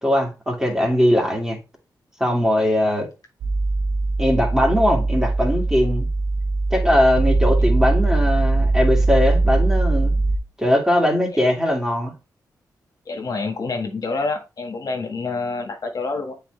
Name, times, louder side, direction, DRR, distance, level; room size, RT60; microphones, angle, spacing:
voice 1, 0.0-1.6 2.2-3.1 4.2-6.1 6.7-10.1 10.6-12.1, left 1 dB, 5° right, 2.3 m, -20 dB
sound 1, 3.4-10.4, right 2 dB, 85° right, 1.2 m, -20 dB
voice 2, 13.0-16.3, left 3 dB, 60° left, 1.6 m, -27 dB
7.8 x 4.4 x 3.3 m
cardioid pair, 75°, 7 cm